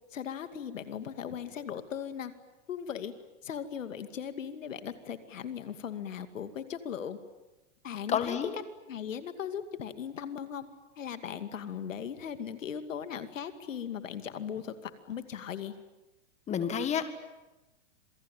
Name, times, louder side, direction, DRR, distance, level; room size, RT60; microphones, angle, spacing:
voice 1, 0.1-2.3 2.7-3.1 3.4-7.2 7.8-8.4 8.9-10.6 11.0-15.7, left 8 dB, 90° left, 10 dB, 2.5 m, -38 dB
voice 2, 8.1-8.6 16.5-17.1, left 8 dB, 20° left, 10 dB, 1.9 m, -29 dB
27.0 x 23.0 x 9.1 m, 1.0 s
hypercardioid pair, 145°, 37 cm